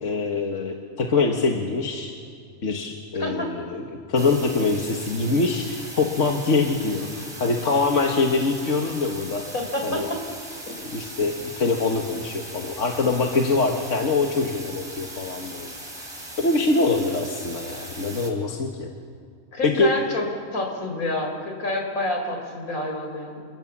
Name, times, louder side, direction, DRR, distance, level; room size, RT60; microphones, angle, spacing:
voice 1, 0.0-2.1 2.6-3.8 4.1-9.4 9.8-10.1 10.8-15.7 16.0-16.1 16.4-18.9 19.6-19.9, left 3 dB, 60° left, 2 dB, 1.9 m, -24 dB
voice 2, 3.2-3.5 9.5-10.2 10.7-10.8 19.5-20.3 20.5-23.5, left 1 dB, 75° left, 3 dB, 5.1 m, -28 dB
sound 1, 4.1-18.3, right 1 dB, 20° right, 3.5 m, -39 dB
28.5 x 26.0 x 7.4 m, 2.3 s
omnidirectional pair, 1.5 m